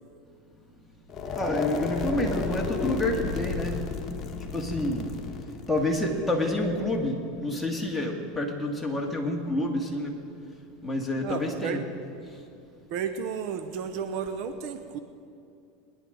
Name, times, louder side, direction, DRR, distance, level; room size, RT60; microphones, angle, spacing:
sound 1, 1.1-7.1, left 4 dB, 30° left, 1.6 m, -33 dB
voice 1, 1.4-3.8 4.5-5.1 5.7-10.1 10.8-11.8, left 1 dB, 5° left, -1 dB, 2.2 m, -28 dB
voice 2, 5.9-6.2 11.2-11.8 12.9-15.0, right 7 dB, 60° right, 8 dB, 0.9 m, -33 dB
22.0 x 10.5 x 4.0 m, 2.6 s
supercardioid pair, 115°, 0 cm